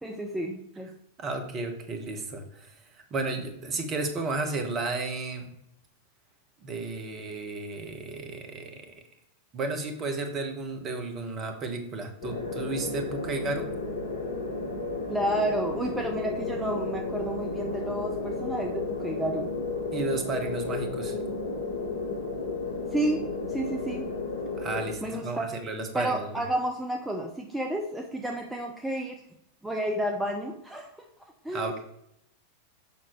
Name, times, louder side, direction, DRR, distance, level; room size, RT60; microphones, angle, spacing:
voice 1, 0.0-0.9 15.1-19.5 22.9-23.2 23.5-24.1 25.0-25.5 25.9-29.2 29.6-30.9 31.4-31.7, right 1 dB, 5° right, 1 dB, 0.7 m, -31 dB
voice 2, 1.2-5.5 6.6-8.9 9.5-13.7 19.9-21.2 24.6-26.4 31.5-31.8, right 3 dB, 30° right, 5 dB, 1.2 m, -33 dB
sound 1, 12.2-24.9, left 3 dB, 60° left, 1.2 m, -33 dB
7.0 x 5.8 x 3.1 m, 0.78 s
figure-of-eight pair, 90°, 0 cm